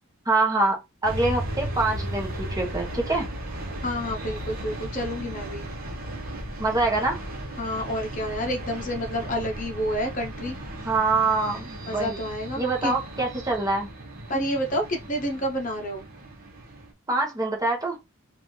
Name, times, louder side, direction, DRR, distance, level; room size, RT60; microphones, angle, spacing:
voice 1, 0.2-3.3 6.6-7.2 10.8-12.2 12.6-13.9 17.1-18.0, right 3 dB, 15° right, 1.1 m, -25 dB
sound 1, 1.0-16.9, right 1 dB, 45° right, 1.0 m, -36 dB
voice 2, 3.8-5.7 7.6-10.6 11.8-13.0 14.3-16.1, equal, 40° left, 0.8 m, -29 dB
3.9 x 2.5 x 3.2 m
head